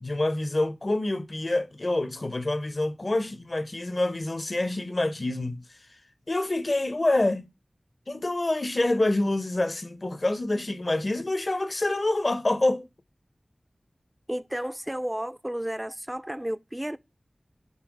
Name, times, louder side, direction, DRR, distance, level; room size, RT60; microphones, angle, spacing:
voice 1, 0.0-5.6 6.3-7.5 8.1-12.8, left 2 dB, 50° left, 0.8 m, -26 dB
voice 2, 14.3-17.0, right 1 dB, 15° right, 0.4 m, -32 dB
5.5 x 4.6 x 6.0 m
wide cardioid pair, 50°, 0 cm